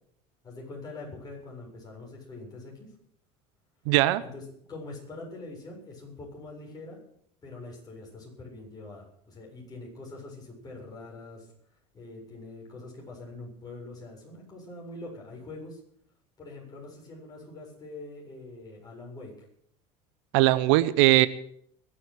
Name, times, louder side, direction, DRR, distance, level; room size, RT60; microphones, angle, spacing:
voice 1, 0.4-2.9 4.2-7.0 7.4-11.5 11.9-15.8 16.4-19.3, left 2 dB, 25° left, -2 dB, 7.4 m, -44 dB
voice 2, 3.9-4.2 20.3-21.3, right 17 dB, 85° right, 15 dB, 0.8 m, -20 dB
23.0 x 7.9 x 6.5 m, 0.65 s
supercardioid pair, 115°, 15 cm